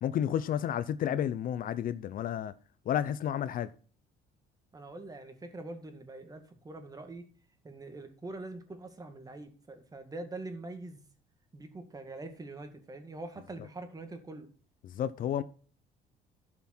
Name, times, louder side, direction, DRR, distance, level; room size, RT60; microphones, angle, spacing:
voice 1, 0.0-2.5 2.9-3.7 14.8-15.4, left 10 dB, 55° left, 0.6 m, -31 dB
voice 2, 4.7-7.3 7.6-11.0 11.5-14.5, right 2 dB, 20° right, 2.0 m, -44 dB
11.5 x 5.9 x 4.4 m
cardioid pair, 110°, 17 cm